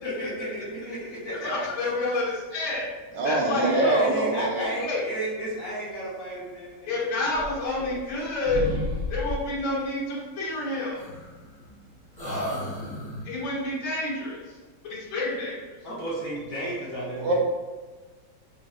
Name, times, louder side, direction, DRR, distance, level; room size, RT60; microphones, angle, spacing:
voice 1, 0.0-2.1 3.5-8.0 15.8-17.3, right 1 dB, 55° left, -7 dB, 1.1 m, -33 dB
voice 2, 1.4-2.9 3.2-3.7 4.8-5.0 6.9-8.6 9.1-11.0 13.3-14.4 14.8-15.6, left 2 dB, 70° left, -6 dB, 1.9 m, -29 dB
voice 3, 3.1-4.6 17.2-17.3, right 2 dB, 75° right, -1 dB, 1.1 m, -24 dB
sound 1, 7.3-8.2 8.4-9.6 10.9-11.8 12.2-13.4, left 2 dB, 30° left, 0.8 m, -33 dB
5.2 x 2.6 x 2.4 m, 1.3 s
omnidirectional pair, 2.2 m